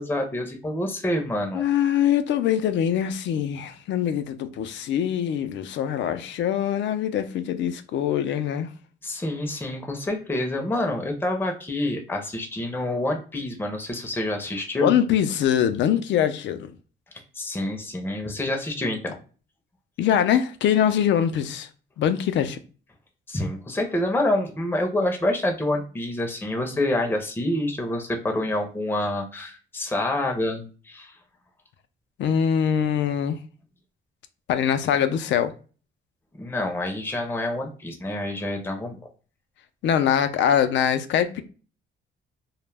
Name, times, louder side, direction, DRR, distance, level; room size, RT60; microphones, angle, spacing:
voice 1, 0.0-1.6 9.0-14.9 17.4-19.2 23.3-31.1 36.4-39.0, left 1 dB, 10° left, 0.5 m, -27 dB
voice 2, 1.5-8.7 14.8-16.7 20.0-21.7 22.0-22.6 32.2-33.4 34.5-35.5 39.8-41.4, left 9 dB, 70° left, 0.4 m, -23 dB
2.2 x 2.0 x 3.2 m
cardioid pair, 90°, 20 cm